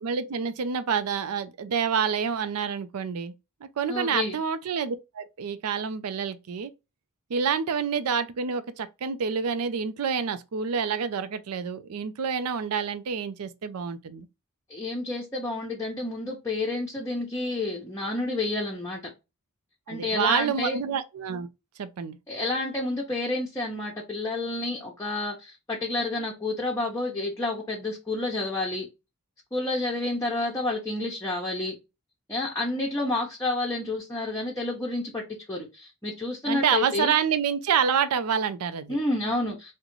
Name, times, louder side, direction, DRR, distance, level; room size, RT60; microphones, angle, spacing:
voice 1, 0.0-3.3 3.8-6.7 7.3-14.3 19.9-21.5 21.8-22.2 36.5-39.0, right 6 dB, 85° right, 0.5 m, -28 dB
voice 2, 3.9-4.4 14.7-19.1 19.9-20.8 22.3-28.9 29.5-31.8 32.3-37.1 38.9-39.7, left 2 dB, 15° left, 0.7 m, -30 dB
3.7 x 2.2 x 2.9 m
head